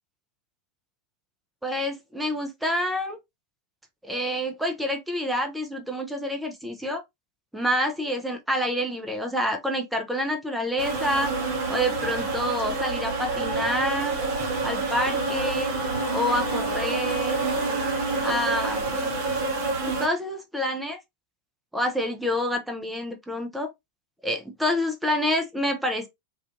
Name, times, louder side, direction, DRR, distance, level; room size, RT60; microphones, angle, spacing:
voice 1, 1.6-3.2 4.0-7.0 7.5-11.3 11.7-14.2 14.6-15.7 16.1-17.4 18.2-19.0 20.0-21.0 21.7-23.7 24.2-26.1, equal, 5° right, 0.6 m, -27 dB
sound 1, 10.8-20.1, right 3 dB, 45° right, 0.7 m, -27 dB
2.4 x 2.4 x 2.4 m
figure-of-eight pair, 90°, 0 cm